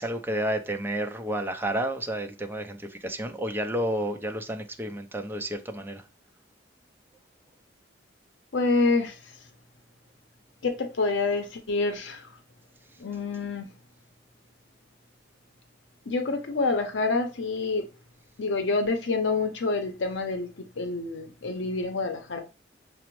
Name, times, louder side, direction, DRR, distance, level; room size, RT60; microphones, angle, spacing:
voice 1, 0.0-6.0, right 1 dB, 10° right, 0.4 m, -31 dB
voice 2, 8.5-9.2 10.6-12.3 13.0-13.7 16.1-17.8 18.4-20.5 20.8-22.4, left 3 dB, 85° left, 0.6 m, -27 dB
5.9 x 2.0 x 3.0 m
head